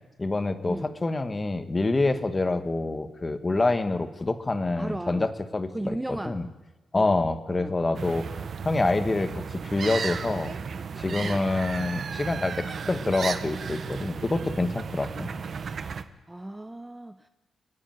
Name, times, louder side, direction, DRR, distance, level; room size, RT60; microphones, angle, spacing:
voice 1, 0.2-6.5 6.9-8.3 8.6-10.6 11.0-15.3, left 2 dB, 20° left, 9 dB, 1.2 m, -27 dB
voice 2, 4.8-5.3 5.7-6.4 6.9-7.1 7.5-7.8 11.2-11.4 15.2-15.4 16.3-17.3, right 1 dB, 10° right, 10 dB, 0.6 m, -35 dB
sound 1, 7.9-16.0, right 6 dB, 45° right, 1.0 m, -34 dB
29.5 x 10.0 x 9.3 m, 1.1 s
wide cardioid pair, 165°, 0 cm